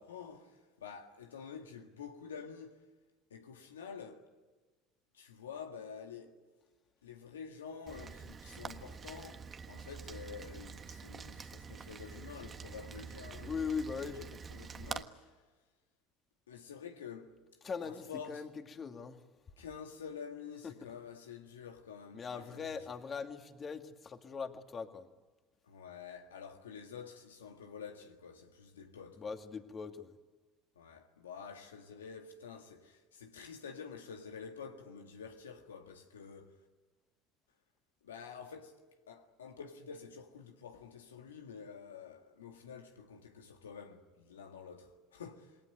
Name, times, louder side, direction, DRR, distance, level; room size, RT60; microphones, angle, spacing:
voice 1, 0.0-2.8 3.3-4.3 5.1-6.4 7.0-15.4 16.5-17.4 17.8-18.4 19.6-22.8 25.6-29.4 30.7-36.6 38.0-45.6, left 6 dB, 90° left, 1.7 m, -49 dB
Rain, 7.9-15.0, right 6 dB, 35° right, 1.4 m, -46 dB
voice 2, 13.4-14.2 17.6-19.2 20.6-20.9 22.1-25.1 29.2-30.1, left 5 dB, 35° left, 2.4 m, -40 dB
28.0 x 21.0 x 9.5 m
hypercardioid pair, 75°, 0 cm